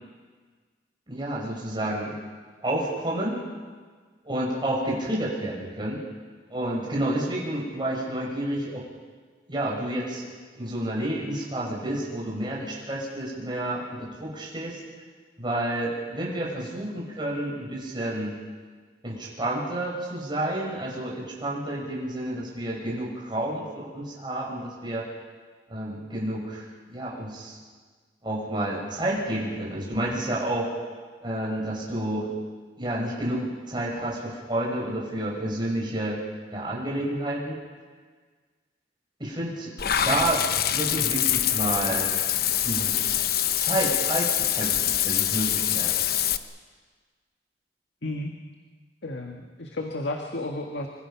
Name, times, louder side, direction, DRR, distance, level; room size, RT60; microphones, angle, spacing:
voice 1, 1.1-2.2 2.6-3.4 4.2-6.0 6.5-8.8 9.5-10.3 10.5-14.8 15.4-18.3 19.0-25.1 25.7-27.6 28.2-30.7 31.2-32.3 32.8-36.2 36.5-37.6 39.2-39.7 40.0-42.1 42.6-43.0 43.6-46.0, right 1 dB, 25° right, -4 dB, 6.3 m, -30 dB
Water / Bathtub (filling or washing), 39.8-46.4, left 11 dB, 60° left, 1.0 m, -25 dB
voice 2, 48.0-48.4 49.0-50.9, left 2 dB, 85° left, 2 dB, 1.8 m, -32 dB
27.0 x 24.5 x 5.9 m, 1.5 s
head